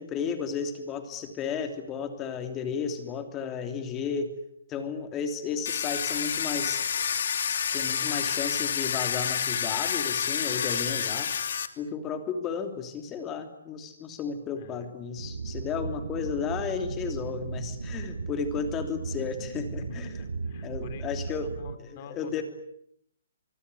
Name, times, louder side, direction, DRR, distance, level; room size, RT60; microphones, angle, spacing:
voice 1, 0.0-4.3 4.7-6.8 7.5-11.3 11.8-20.1 20.6-21.5 21.8-22.4, left 6 dB, 20° left, 7 dB, 3.2 m, -33 dB
Domestic sounds home sounds, 5.6-11.7, left 7 dB, 60° left, 2.6 m, -29 dB
voice 2, 14.6-14.9 19.8-21.1 21.4-22.4, left 7 dB, 35° left, 9 dB, 4.4 m, -47 dB
sound 1, 15.2-21.8, right 4 dB, 75° right, 1.7 m, -36 dB
25.5 x 23.0 x 9.8 m, 0.73 s
hypercardioid pair, 155°, 0 cm